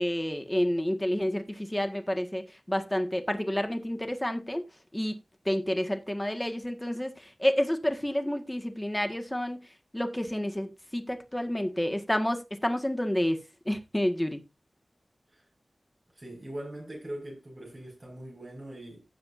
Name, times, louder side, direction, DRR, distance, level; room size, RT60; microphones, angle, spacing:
voice 1, 0.0-4.6 4.9-5.1 5.5-9.6 9.9-13.4 13.7-14.4, equal, 10° left, 1.7 m, -29 dB
voice 2, 16.1-19.0, right 1 dB, 30° right, 5.7 m, -41 dB
16.0 x 6.8 x 2.7 m
wide cardioid pair, 80°, 0 cm